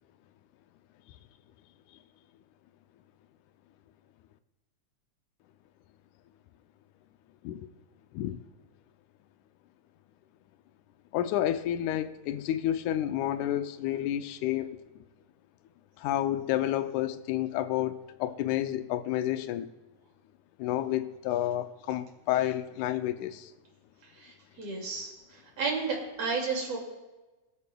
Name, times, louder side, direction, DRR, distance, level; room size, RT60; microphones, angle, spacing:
voice 1, 11.1-14.8 16.0-19.7 20.6-23.5, left 12 dB, 85° left, 11 dB, 2.0 m, -30 dB
voice 2, 24.2-26.8, right 4 dB, 60° right, -1 dB, 3.3 m, -33 dB
21.0 x 8.3 x 2.3 m, 1.1 s
omnidirectional pair, 3.4 m